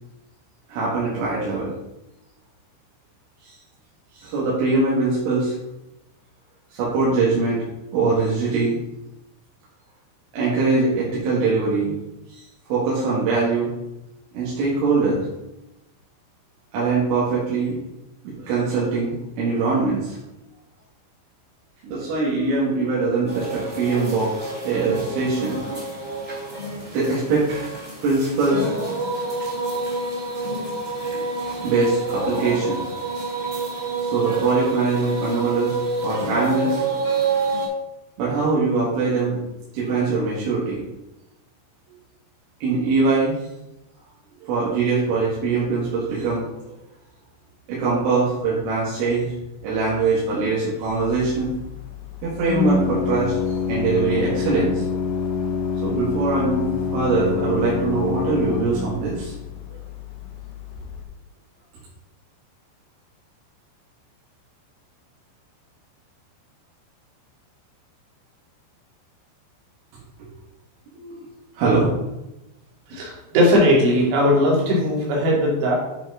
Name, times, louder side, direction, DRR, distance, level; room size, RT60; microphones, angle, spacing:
voice 1, 0.7-1.7 3.4-3.5 4.1-5.6 6.7-7.7 7.9-8.8 10.3-11.9 12.3-12.4 12.7-13.7 14.3-15.3 16.7-17.8 18.2-20.2 21.8-24.3 24.6-25.6 26.9-28.7 31.4-32.8 34.0-35.8 36.0-36.8 38.2-39.4 39.7-40.8 42.6-43.4 44.4-46.6 47.7-49.3 49.6-51.5 52.2-54.8 55.8-59.3 59.7-59.8 70.9-71.2 71.6-71.9, right 3 dB, 85° right, -7 dB, 4.4 m, -22 dB
sound 1, 23.3-37.7, right 3 dB, 15° right, 1.6 m, -28 dB
Organ, 50.9-61.0, left 5 dB, 80° left, 3.2 m, -27 dB
voice 2, 72.9-75.8, equal, 65° right, -3 dB, 4.3 m, -18 dB
10.5 x 5.5 x 3.8 m, 0.91 s
omnidirectional pair, 5.5 m